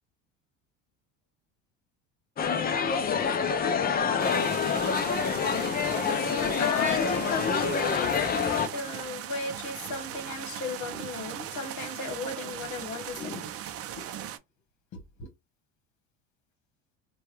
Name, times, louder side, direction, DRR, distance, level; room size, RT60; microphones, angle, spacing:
sound 1, 2.4-8.7, left 6 dB, 25° left, 0.5 m, -27 dB
sound 2, 4.2-14.4, right 10 dB, 45° right, 0.5 m, -39 dB
voice 1, 6.1-13.5 14.0-14.1, left 4 dB, 55° left, 1.2 m, -35 dB
2.8 x 2.3 x 3.1 m
supercardioid pair, 95°, 34 cm